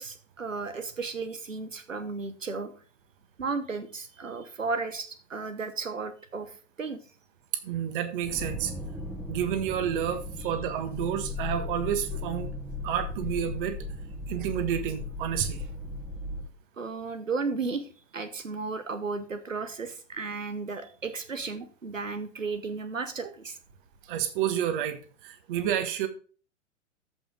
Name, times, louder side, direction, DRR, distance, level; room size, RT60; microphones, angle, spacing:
voice 1, 0.0-2.7 3.4-7.0 16.8-23.6, right 4 dB, 90° right, 11 dB, 1.1 m, -34 dB
voice 2, 7.5-8.7 9.3-12.5 12.8-13.8 14.3-15.6 24.1-26.1, right 9 dB, 45° right, 10 dB, 1.6 m, -30 dB
sound 1, 8.2-16.5, left 3 dB, 5° right, 1.4 m, -37 dB
14.0 x 5.4 x 3.8 m, 0.40 s
figure-of-eight pair, 110°, 38 cm